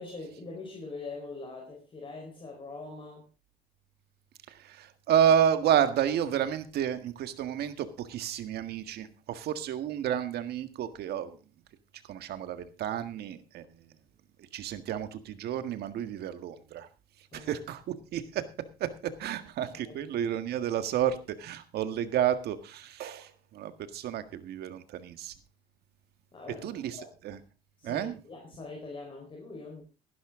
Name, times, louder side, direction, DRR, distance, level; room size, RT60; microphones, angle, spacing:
voice 1, 0.0-3.3 17.3-17.6 19.8-20.0 26.3-27.1 27.8-29.8, left 3 dB, 30° left, 4.5 m, -43 dB
voice 2, 4.5-11.4 12.0-13.7 14.4-16.9 17.3-18.4 18.8-18.9 19.2-25.4 26.6-27.0 27.2-27.4 27.8-28.2, right 9 dB, 70° right, 1.7 m, -30 dB
16.0 x 11.5 x 3.7 m
cardioid pair, 110°, 17 cm